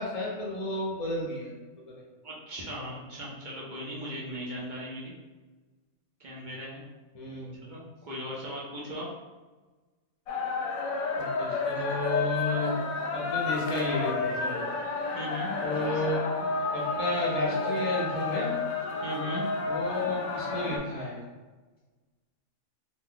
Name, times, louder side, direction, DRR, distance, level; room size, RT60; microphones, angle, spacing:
voice 1, 0.0-1.5 1.9-2.0 7.1-7.6 11.2-12.8 13.1-14.6 15.6-16.2 16.5-18.6 19.7-21.2, left 2 dB, 35° left, -4 dB, 0.7 m, -32 dB
voice 2, 2.2-5.1 6.2-6.8 7.7-9.1 15.1-16.0 16.4-16.5 19.0-19.4, equal, 50° right, -5 dB, 0.6 m, -38 dB
sound 1, 10.3-20.8, left 3 dB, 75° left, 0.9 m, -31 dB
2.7 x 2.2 x 3.6 m, 1.2 s
omnidirectional pair, 1.5 m